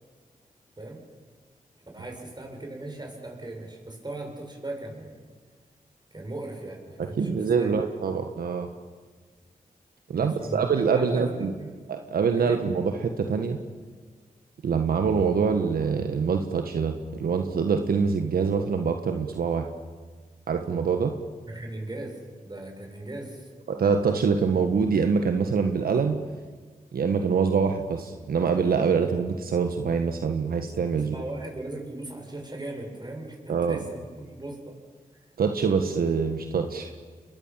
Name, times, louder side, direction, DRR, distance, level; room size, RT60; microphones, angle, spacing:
voice 1, 1.9-5.3 6.1-7.7 10.2-11.7 12.4-12.6 21.5-23.5 30.9-34.7, right 2 dB, 30° right, 2 dB, 7.8 m, -38 dB
voice 2, 7.0-8.7 10.1-11.5 11.9-13.6 14.6-19.6 20.5-21.1 23.7-26.2 26.9-31.1 33.5-33.8 35.4-36.9, right 5 dB, 85° right, 6 dB, 1.5 m, -25 dB
29.0 x 22.0 x 7.5 m, 1.5 s
cardioid pair, 50°, 15 cm